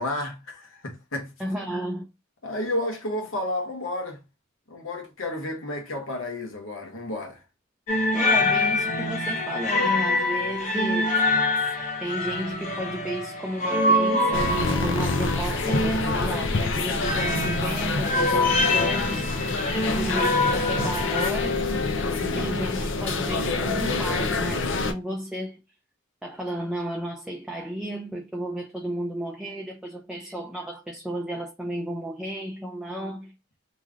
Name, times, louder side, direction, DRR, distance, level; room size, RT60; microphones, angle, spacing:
voice 1, 0.0-1.3 2.4-4.2 4.7-7.4, left 1 dB, 80° left, 1.2 m, -31 dB
voice 2, 1.4-2.1 8.1-11.2 12.0-19.3 20.0-21.6 22.2-25.6 26.2-33.3, right 1 dB, 5° right, 0.5 m, -33 dB
sound 1, 7.9-21.3, left 2 dB, 40° left, 1.0 m, -25 dB
sound 2, 14.3-24.9, left 3 dB, 65° left, 0.6 m, -27 dB
3.6 x 3.1 x 2.4 m
head